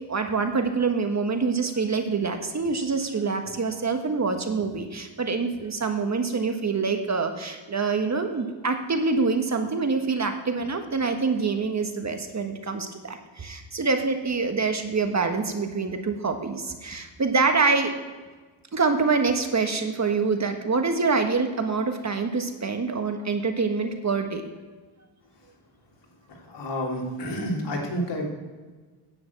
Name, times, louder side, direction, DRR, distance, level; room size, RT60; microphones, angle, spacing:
voice 1, 0.1-17.9 18.7-24.4, right 4 dB, 35° right, 6 dB, 1.4 m, -25 dB
voice 2, 26.5-28.2, equal, 60° left, -1 dB, 3.6 m, -29 dB
10.0 x 7.0 x 8.6 m, 1.3 s
cardioid pair, 85°, 48 cm